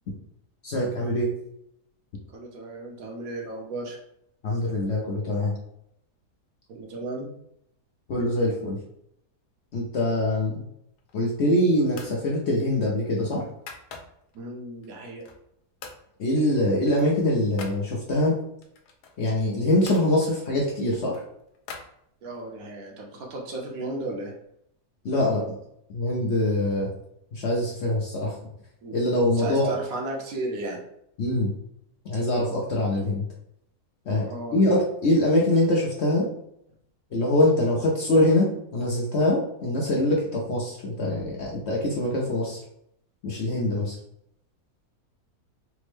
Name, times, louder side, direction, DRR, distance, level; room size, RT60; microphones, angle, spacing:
voice 1, 0.6-1.3 4.4-5.5 8.1-8.8 9.7-10.5 11.1-13.4 16.2-18.3 19.2-21.2 25.0-25.4 25.9-26.9 27.3-28.3 28.9-29.7 31.2-31.5 32.1-33.2 34.1-34.3 34.5-36.3 37.1-42.6 43.2-43.9, left 1 dB, 60° left, -3 dB, 0.7 m, -23 dB
voice 2, 2.3-4.0 6.7-7.3 14.3-15.3 22.2-24.3 28.8-29.0 29.3-30.8 34.3-34.6, right 2 dB, 70° right, 0 dB, 1.1 m, -34 dB
sound 1, 10.9-11.5 11.9-12.2 12.6-14.4 14.8-15.5 15.8-16.1 16.4-17.8 18.6-20.1 20.6-22.5, left 4 dB, 90° left, 1.2 m, -45 dB
3.4 x 2.1 x 3.2 m, 0.75 s
omnidirectional pair, 1.7 m